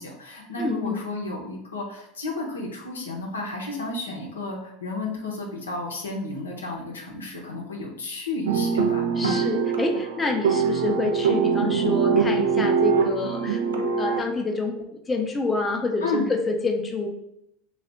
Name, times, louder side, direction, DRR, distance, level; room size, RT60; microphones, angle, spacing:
voice 1, 0.0-9.5 16.0-16.3, left 2 dB, 85° left, 0 dB, 0.7 m, -32 dB
voice 2, 0.6-1.0 9.2-17.1, left 3 dB, 20° left, 2 dB, 0.5 m, -28 dB
sound 1, 8.4-14.2, right 6 dB, 80° right, 0.4 m, -23 dB
2.7 x 2.3 x 3.4 m, 0.79 s
hypercardioid pair, 85°, 0 cm